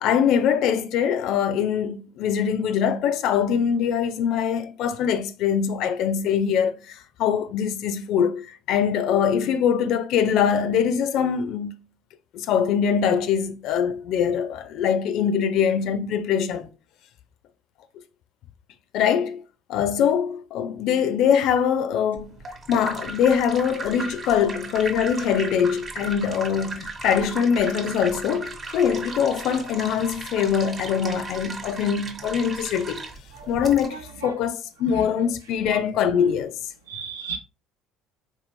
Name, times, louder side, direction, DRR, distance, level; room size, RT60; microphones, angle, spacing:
voice 1, 0.0-11.8 12.3-16.7 18.9-19.4 19.7-22.4 22.7-33.0 33.5-36.6, left 8 dB, 55° left, 0.4 m, -23 dB
sound 1, 22.2-33.9, right 3 dB, 35° right, 0.8 m, -36 dB
voice 2, 36.9-37.4, right 6 dB, 80° right, 0.6 m, -34 dB
4.0 x 2.7 x 2.9 m
figure-of-eight pair, 55°, 0 cm